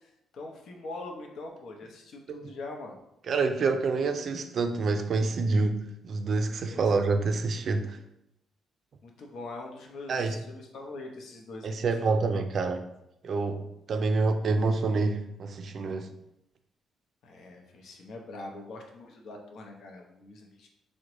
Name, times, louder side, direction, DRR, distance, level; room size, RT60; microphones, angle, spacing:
voice 1, 0.0-3.0 6.7-6.9 9.0-12.4 17.2-20.7, left 2 dB, 70° left, 2 dB, 0.6 m, -43 dB
voice 2, 3.3-8.0 10.1-10.4 11.6-12.8 13.2-16.1, right 3 dB, 55° right, 7 dB, 0.3 m, -27 dB
3.7 x 2.1 x 3.0 m, 0.82 s
cardioid pair, 90°, 0 cm